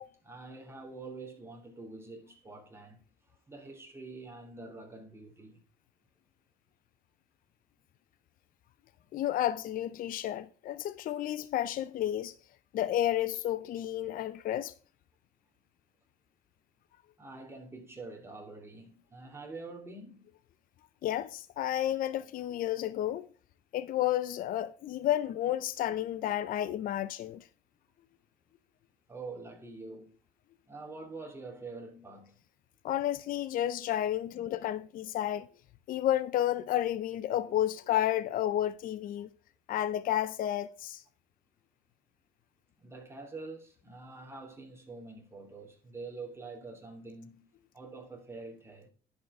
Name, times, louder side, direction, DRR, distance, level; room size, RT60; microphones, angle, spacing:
voice 1, 0.0-5.6 17.2-20.3 29.1-30.1 30.7-32.4 34.3-34.6 42.8-47.4 47.7-48.9, right 3 dB, 15° right, 2.5 m, -46 dB
voice 2, 9.1-12.4 12.7-14.7 21.0-23.3 23.7-27.5 32.8-35.5 35.9-39.3 39.7-41.0, left 12 dB, 55° left, 0.5 m, -31 dB
10.5 x 5.5 x 3.5 m
cardioid pair, 110°, 17 cm